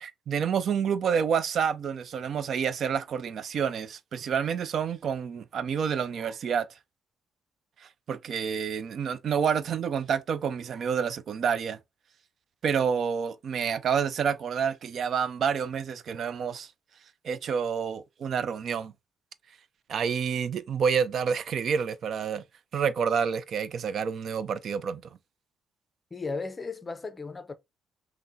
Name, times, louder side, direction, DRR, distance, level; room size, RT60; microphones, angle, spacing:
voice 1, 0.0-6.7 7.8-11.8 12.6-16.7 17.2-18.9 19.9-22.4 22.7-25.2, right 7 dB, 60° right, 0.4 m, -28 dB
voice 2, 26.1-27.5, left 4 dB, 25° left, 0.5 m, -35 dB
5.7 x 2.1 x 2.6 m
cardioid pair, 90°, 0 cm